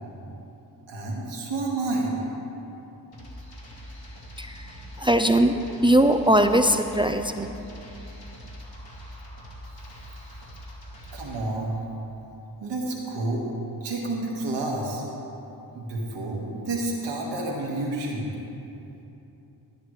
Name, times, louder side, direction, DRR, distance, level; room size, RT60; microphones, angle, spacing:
voice 1, 0.9-2.1 11.1-11.8 12.6-13.5 13.8-15.0 15.7-18.3, right 2 dB, 85° right, -2 dB, 1.7 m, -29 dB
sound 1, 3.1-11.5, equal, 60° left, 2.5 m, -43 dB
voice 2, 4.4-7.6, right 1 dB, 15° right, 7 dB, 0.3 m, -21 dB
12.0 x 10.0 x 3.2 m, 3.0 s
cardioid pair, 60°, 42 cm